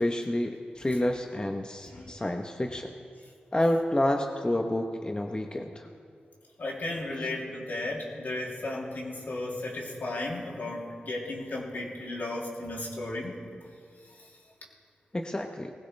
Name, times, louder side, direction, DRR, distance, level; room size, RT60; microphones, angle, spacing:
voice 1, 0.0-2.9 3.5-5.9 15.1-15.7, left 1 dB, 25° left, 3 dB, 1.0 m, -29 dB
voice 2, 6.6-13.4, left 2 dB, 70° left, -3 dB, 3.0 m, -34 dB
19.5 x 16.0 x 3.4 m, 2.2 s
cardioid pair, 40°, 3 cm